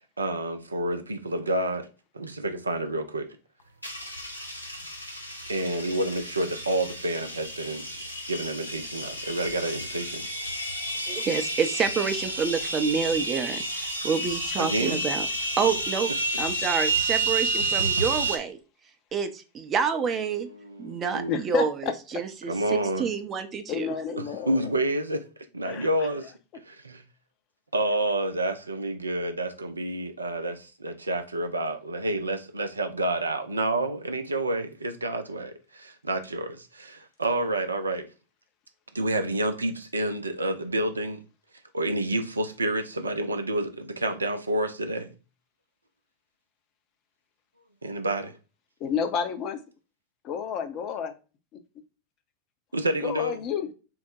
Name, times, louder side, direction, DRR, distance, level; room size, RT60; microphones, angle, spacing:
voice 1, 0.2-1.9 2.1-3.3 5.5-7.9 8.3-10.3 14.6-15.0 20.4-21.4 22.5-23.1 24.2-25.3 25.5-27.0 27.7-38.1 38.9-41.2 41.7-45.1 47.8-48.4 52.7-53.4, right 1 dB, 80° right, 0.5 m, -29 dB
sound 1, 3.8-18.4, right 2 dB, 85° left, 0.8 m, -30 dB
voice 2, 11.1-15.3 15.6-16.1 16.4-18.6 19.1-20.5 20.8-23.9, right 6 dB, 25° right, 0.5 m, -28 dB
voice 3, 21.3-21.9 23.7-24.7 25.6-25.9 48.8-49.6 50.2-51.1 51.5-51.6 53.0-53.7, left 7 dB, 35° left, 0.6 m, -30 dB
3.8 x 2.1 x 4.4 m
figure-of-eight pair, 90°, 0 cm